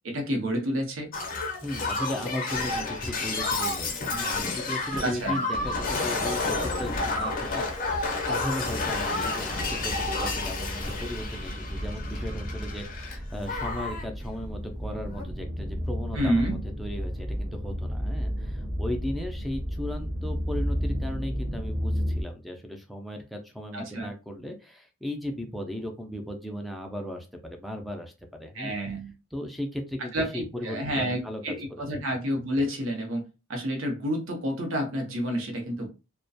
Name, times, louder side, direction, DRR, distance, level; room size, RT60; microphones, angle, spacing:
voice 1, 0.0-1.1 5.0-5.4 16.1-16.6 23.7-24.1 28.5-29.1 30.1-33.2 33.5-35.9, equal, 70° right, 3 dB, 0.7 m, -29 dB
Shatter, 1.1-13.2 13.4-14.0 15.1-15.2, left 3 dB, 40° left, 0.6 m, -30 dB
voice 2, 1.6-28.7 29.3-31.8, left 1 dB, ahead, 3 dB, 0.3 m, -36 dB
sound 1, 9.5-22.2, equal, 30° right, 0.7 m, -32 dB
2.3 x 2.1 x 2.5 m, 0.29 s
head